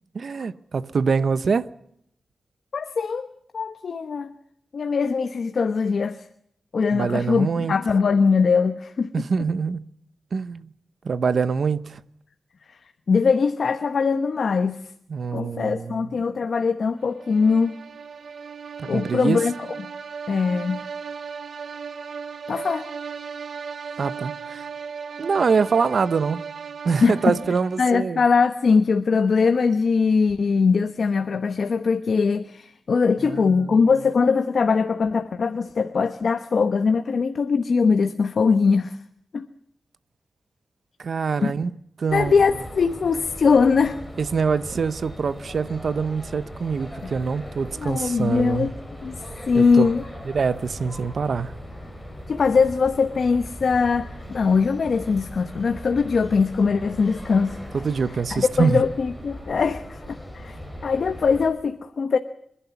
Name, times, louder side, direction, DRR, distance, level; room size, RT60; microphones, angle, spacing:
voice 1, 0.1-1.7 6.9-7.8 9.1-9.8 10.3-10.7 11.0-12.0 15.1-16.1 18.8-19.4 24.0-24.7 25.2-26.5 26.8-28.2 33.2-33.8 41.0-41.7 42.0-42.3 44.2-48.7 49.5-49.9 50.3-51.5 57.7-58.8, right 5 dB, 60° right, 0.9 m, -24 dB
voice 2, 2.7-3.3 3.5-4.3 4.7-6.2 6.7-9.1 12.7-12.8 13.1-14.8 15.3-17.8 18.8-19.5 20.3-20.9 22.5-22.9 27.0-27.4 27.8-39.0 39.3-39.5 41.4-41.5 42.1-44.0 47.8-48.7 49.0-49.1 49.5-50.0 52.3-57.6 58.3-60.6 60.8-62.2, left 5 dB, 60° left, 1.0 m, -21 dB
sound 1, 17.1-28.0, right 6 dB, 80° right, 1.4 m, -36 dB
sound 2, 42.1-61.5, equal, ahead, 5.0 m, -39 dB
27.0 x 11.5 x 9.5 m
wide cardioid pair, 120°, 0 cm